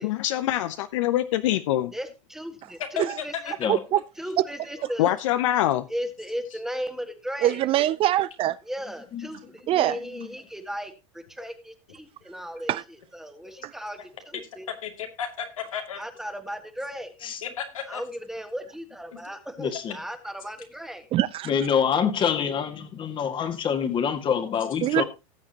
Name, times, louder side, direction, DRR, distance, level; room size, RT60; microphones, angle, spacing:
voice 1, 0.0-1.9 5.0-5.9, left 13 dB, 70° left, 0.7 m, -24 dB
voice 2, 1.9-3.5 4.2-5.2 5.9-7.6 8.6-14.7 16.0-17.1 17.9-21.1, equal, 5° right, 1.6 m, -36 dB
voice 3, 3.0-3.5 6.5-6.6 14.3-14.4 14.7-16.0 17.4-18.0 19.1-19.2, left 8 dB, 85° left, 2.5 m, -33 dB
voice 4, 3.7-4.0 4.4-4.5 7.4-8.6 9.7-10.0 12.7-12.8 21.1-21.5 24.8-25.0, right 13 dB, 35° right, 0.4 m, -23 dB
voice 5, 19.6-20.0 21.5-25.0, left 7 dB, 30° left, 1.9 m, -26 dB
18.0 x 7.2 x 2.9 m
hypercardioid pair, 115°, 17 cm